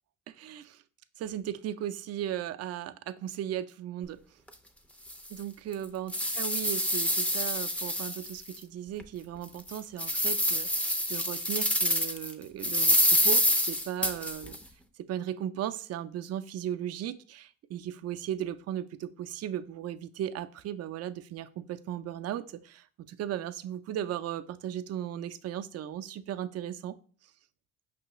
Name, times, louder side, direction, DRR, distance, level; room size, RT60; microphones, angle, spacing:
voice 1, 0.3-0.8 1.2-4.2 5.3-14.6 15.1-27.0, right 10 dB, 55° right, 11 dB, 0.4 m, -36 dB
sound 1, 4.5-4.6 5.1-5.2 5.7-8.6 9.0-9.1 9.6-12.3 12.6-14.6, equal, 5° left, 0.5 m, -27 dB
5.2 x 3.3 x 2.9 m, 0.42 s
cardioid pair, 90°, 30 cm